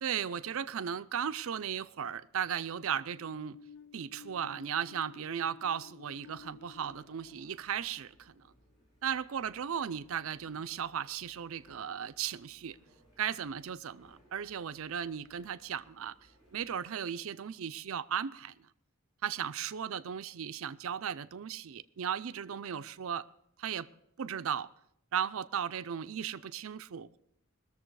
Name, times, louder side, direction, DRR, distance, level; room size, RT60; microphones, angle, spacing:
voice 1, 0.0-3.6 3.9-8.4 9.0-12.8 13.2-16.2 16.5-18.7 19.2-23.3 23.6-23.9 24.2-24.7 25.1-27.2, right 8 dB, 65° right, 0.5 m, -36 dB
sound 1, 3.1-8.8, left 6 dB, 50° left, 0.4 m, -54 dB
sound 2, 6.2-16.8, equal, 20° left, 5.2 m, -65 dB
20.5 x 7.0 x 4.7 m
head